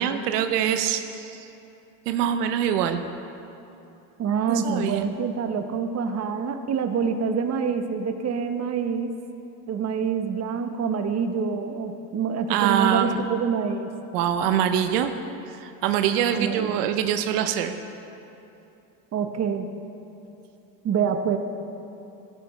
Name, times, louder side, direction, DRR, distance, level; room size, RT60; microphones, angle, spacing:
voice 1, 0.0-1.5 2.1-3.0 4.5-5.1 12.5-13.2 14.1-15.1 15.5-17.8, right 9 dB, 85° right, 8 dB, 0.7 m, -24 dB
voice 2, 4.2-9.2 9.7-13.9 16.3-16.9 19.1-19.7 20.8-21.4, right 6 dB, 35° right, 7 dB, 0.9 m, -26 dB
13.5 x 12.5 x 3.1 m, 2.8 s
supercardioid pair, 80°, 46 cm